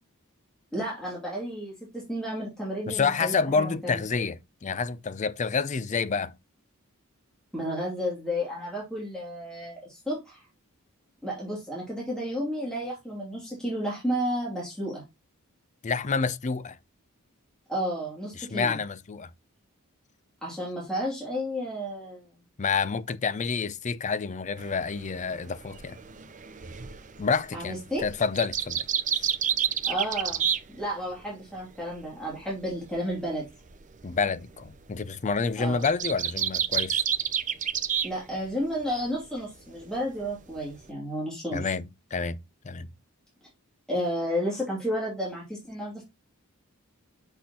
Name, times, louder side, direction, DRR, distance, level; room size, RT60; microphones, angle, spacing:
voice 1, 0.7-4.0 7.5-10.4 11.2-15.0 17.7-18.8 20.4-22.3 27.5-28.1 29.8-30.5 30.8-33.4 35.6-35.9 38.0-41.7 43.9-46.0, equal, 5° left, 2.6 m, -32 dB
voice 2, 2.9-6.3 15.8-16.8 18.4-19.3 22.6-26.0 27.2-28.8 29.1-29.3 34.0-37.0 41.5-41.9 42.1-42.9, left 5 dB, 35° left, 0.5 m, -28 dB
sound 1, 24.6-31.3 31.6-38.1 38.4-39.1 39.5-40.9, right 8 dB, 35° right, 0.6 m, -30 dB
6.7 x 6.0 x 2.9 m
head